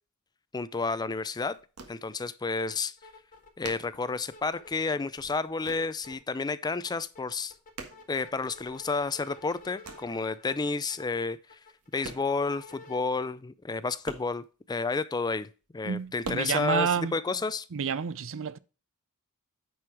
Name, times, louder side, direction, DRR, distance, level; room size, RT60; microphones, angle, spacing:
voice 1, 0.5-1.6 1.9-2.9 3.6-7.5 8.1-11.4 11.9-17.7, left 4 dB, 20° left, 0.4 m, -31 dB
sound 1, 1.2-2.4 2.7-2.8 3.0-4.8 5.0-6.0 6.3-6.8 7.1-8.8 9.2-10.3 11.0-11.1 11.6-12.6 12.9-13.0 13.2-13.3 13.6-15.0 15.5-16.3, right 3 dB, 85° right, 1.6 m, -45 dB
sound 2, 2.7-2.8 3.0-4.8 5.2-6.1 6.5-13.0, left 3 dB, 40° left, 1.9 m, -51 dB
voice 2, 15.8-17.1 17.7-18.6, right 6 dB, 65° right, 0.6 m, -29 dB
9.4 x 4.7 x 4.8 m
head